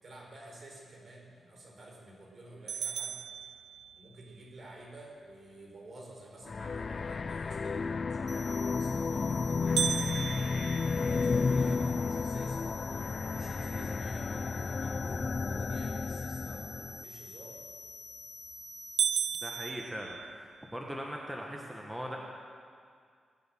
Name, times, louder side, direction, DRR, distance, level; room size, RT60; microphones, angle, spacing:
voice 1, 0.0-3.2 4.0-7.8 8.1-10.3 10.8-17.6 21.4-21.7, right 1 dB, 50° right, -2 dB, 4.8 m, -51 dB
sound 1, 2.7-4.3 9.8-11.9 12.4-12.5 13.0-13.1 13.8-14.1 17.7-18.1 18.5-18.6 19.0-20.7, right 7 dB, 80° right, 0.4 m, -35 dB
sound 2, 6.4-17.0, left 4 dB, 45° left, 0.3 m, -32 dB
sound 3, 8.3-19.7, left 3 dB, 30° left, 3.8 m, -48 dB
voice 2, 19.4-22.2, equal, 5° right, -1 dB, 1.5 m, -40 dB
20.0 x 7.9 x 7.9 m, 2.2 s
cardioid pair, 75°, 0 cm